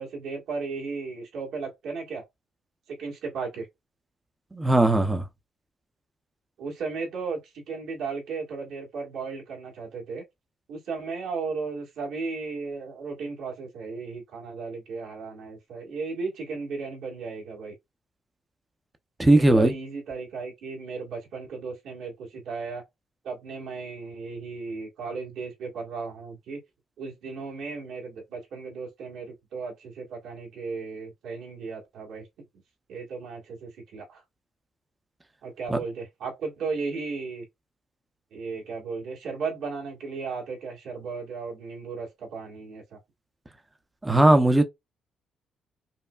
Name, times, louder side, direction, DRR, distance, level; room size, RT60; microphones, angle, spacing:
voice 1, 0.0-2.2 2.9-3.7 6.6-10.2 10.7-17.7 19.3-22.8 23.2-26.6 27.0-32.3 32.9-34.2 35.4-37.4 38.3-43.0, right 4 dB, 80° right, 1.7 m, -35 dB
voice 2, 4.5-5.2 19.2-19.7 35.7-35.8 44.0-44.6, right 1 dB, 15° right, 0.6 m, -18 dB
5.4 x 2.1 x 2.4 m
cardioid pair, 90°, 0 cm